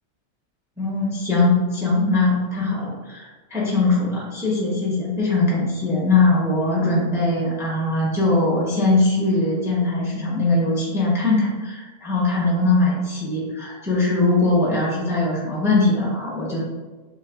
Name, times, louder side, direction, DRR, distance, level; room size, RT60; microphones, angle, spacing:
voice 1, 0.8-16.6, left 2 dB, 5° right, -5 dB, 0.4 m, -21 dB
6.2 x 2.1 x 2.4 m, 1.3 s
omnidirectional pair, 1.6 m